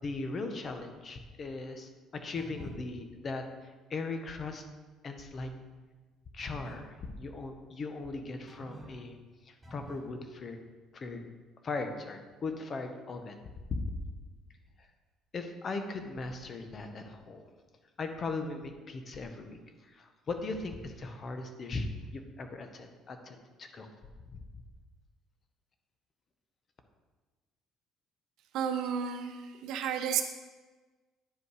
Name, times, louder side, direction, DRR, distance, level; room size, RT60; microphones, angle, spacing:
voice 1, 0.0-4.6 5.0-5.5 6.3-9.1 9.4-10.6 10.9-11.2 11.6-13.4 13.7-13.9 14.8-14.9 15.3-17.5 18.0-23.9 24.3-24.5, left 3 dB, 35° left, 6 dB, 0.9 m, -38 dB
sound 1, 2.3-2.9 6.4-6.9 8.5-9.1 9.6-10.1, right 1 dB, 15° right, 1.2 m, -49 dB
voice 2, 28.5-30.2, right 8 dB, 70° right, 7 dB, 0.8 m, -32 dB
10.0 x 5.3 x 4.9 m, 1.3 s
cardioid pair, 130°, 0 cm